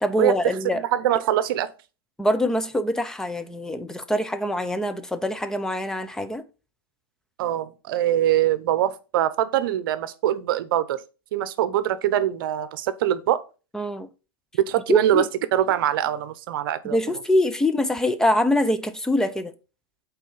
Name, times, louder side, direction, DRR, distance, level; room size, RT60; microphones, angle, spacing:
voice 1, 0.0-0.8 2.2-6.4 13.7-14.1 14.9-15.3 16.8-19.5, left 1 dB, 5° left, 0.6 m, -24 dB
voice 2, 0.7-1.7 7.4-11.0 11.3-13.4 14.7-15.2 15.5-17.0, right 12 dB, 65° right, 0.9 m, -23 dB
8.3 x 4.1 x 5.5 m
supercardioid pair, 135°, 13 cm